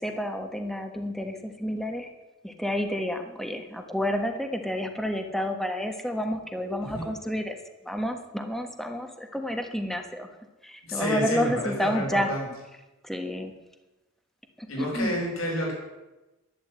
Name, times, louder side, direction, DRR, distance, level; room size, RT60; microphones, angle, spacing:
voice 1, 0.0-2.1 2.4-7.6 7.8-10.3 10.6-12.3 13.0-13.5 14.6-15.1, equal, ahead, 5 dB, 1.2 m, -30 dB
voice 2, 10.8-12.5 14.7-15.7, left 1 dB, 75° left, -2 dB, 5.6 m, -29 dB
11.5 x 11.5 x 8.2 m, 1.1 s
head